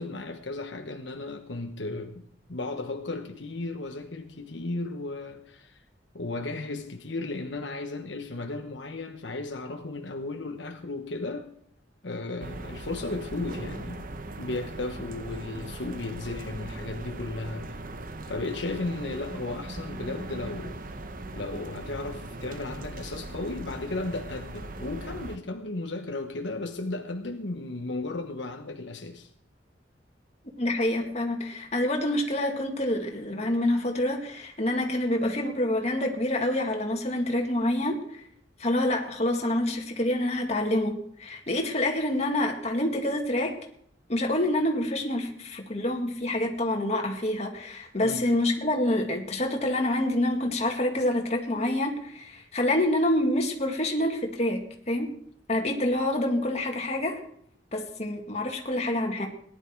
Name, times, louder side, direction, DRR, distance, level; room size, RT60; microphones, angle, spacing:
voice 1, 0.0-5.8 6.1-11.5 12.0-14.0 14.4-17.8 18.2-20.8 21.3-29.3 48.0-48.2, left 2 dB, 75° left, 1.2 m, -35 dB
sound 1, 12.4-25.4, right 2 dB, 50° right, 1.0 m, -39 dB
voice 2, 30.6-38.2 38.6-43.6 44.1-54.6 54.9-55.1 55.5-57.2 57.7-59.3, left 1 dB, 35° left, 2.2 m, -27 dB
18.0 x 11.0 x 4.6 m
head